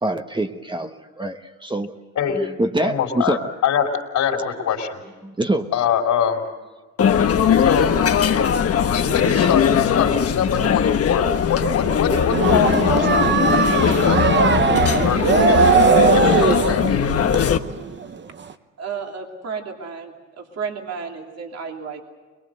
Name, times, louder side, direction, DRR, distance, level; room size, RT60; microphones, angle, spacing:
voice 1, 0.0-1.9 2.3-3.4 5.2-5.7, right 1 dB, 15° right, 6 dB, 1.3 m, -25 dB
voice 2, 2.8-5.0 5.7-6.4 7.6-7.9 8.9-17.0, left 7 dB, 65° left, 3 dB, 3.7 m, -24 dB
sound 1, 7.0-17.6, left 8 dB, 50° left, 1.2 m, -19 dB
sound 2, 12.3-18.1 18.5-18.6, right 5 dB, 40° right, 1.0 m, -19 dB
voice 3, 18.8-22.0, right 6 dB, 55° right, 2 dB, 2.8 m, -32 dB
22.5 x 22.0 x 7.9 m, 1.3 s
cardioid pair, 90°, 30 cm